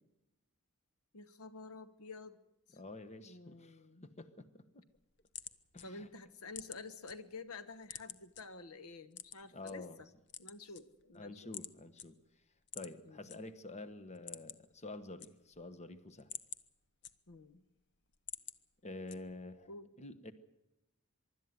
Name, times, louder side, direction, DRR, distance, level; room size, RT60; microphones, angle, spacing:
voice 1, 1.1-2.4 2.7-2.8 3.2-4.1 5.8-9.8 10.4-11.5 13.0-13.2 17.3-17.6 19.7-19.9, left 3 dB, 70° left, 13 dB, 1.0 m, -50 dB
voice 2, 2.7-4.8 5.7-6.1 9.5-10.0 11.1-12.2 12.7-16.3 18.8-19.7 20.0-20.3, left 2 dB, 30° left, 12 dB, 1.1 m, -48 dB
sound 1, 4.9-7.1 7.5-8.4 9.1-9.7 10.2-11.2 11.5-11.7 12.0-12.1 12.6-13.4 13.7-13.8 14.1-14.7 15.0-15.7 16.1-17.5 17.9-18.6 19.1-19.5, left 10 dB, 55° left, 0.9 m, -48 dB
24.5 x 12.5 x 9.6 m, 0.93 s
head